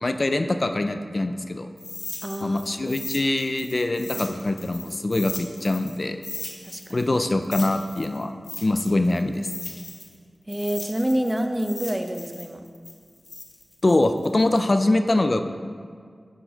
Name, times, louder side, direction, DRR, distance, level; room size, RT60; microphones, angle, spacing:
voice 1, 0.0-1.7 2.4-6.2 6.9-8.3 8.6-9.5 13.8-15.4, left 2 dB, 45° left, 7 dB, 0.3 m, -23 dB
sound 1, 1.8-6.0 6.2-10.2 10.5-14.6, left 3 dB, 60° left, 0.9 m, -38 dB
voice 2, 2.2-2.6 6.7-7.1 10.5-12.6, right 1 dB, 20° right, 6 dB, 0.5 m, -27 dB
5.8 x 4.6 x 4.9 m, 2.1 s
cardioid pair, 50°, 0 cm